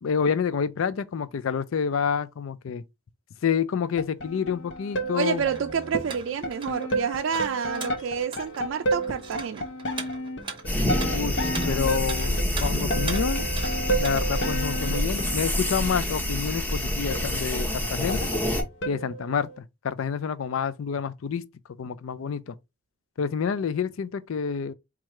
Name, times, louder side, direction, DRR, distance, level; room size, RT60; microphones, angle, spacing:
voice 1, 0.0-2.8 3.4-5.4 11.1-13.5 14.0-18.3 18.9-21.5 21.8-22.5 23.2-24.7, left 6 dB, 75° left, 0.4 m, -28 dB
sound 1, 4.0-19.6, right 1 dB, 60° left, 0.8 m, -33 dB
voice 2, 5.1-9.7, right 7 dB, 65° right, 0.3 m, -29 dB
sound 2, 5.3-14.4, right 5 dB, 25° right, 0.8 m, -41 dB
sound 3, 10.7-18.6, left 1 dB, 10° left, 0.9 m, -27 dB
4.7 x 2.4 x 4.2 m
head